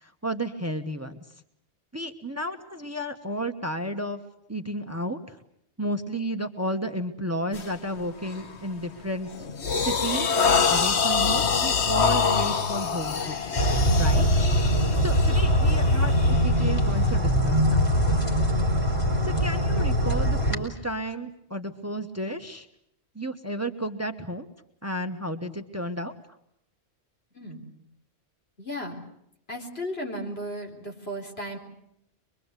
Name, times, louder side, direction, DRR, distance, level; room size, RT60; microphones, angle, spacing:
voice 1, 0.0-1.2 1.9-4.2 4.5-5.4 5.8-9.3 9.8-10.3 10.7-13.4 14.0-14.5 15.0-17.8 19.2-22.7 23.1-24.5 24.8-26.1, right 1 dB, 15° right, 8 dB, 1.3 m, -32 dB
sound 1, 7.5-7.8 8.3-8.6 9.0-17.1, left 5 dB, 85° left, 1.6 m, -26 dB
sound 2, 13.6-20.5, equal, 30° left, 3.9 m, -22 dB
voice 2, 27.3-27.7 28.6-29.0 29.5-31.6, equal, 70° left, 2 dB, 4.4 m, -35 dB
24.0 x 23.5 x 8.2 m, 0.75 s
omnidirectional pair, 1.1 m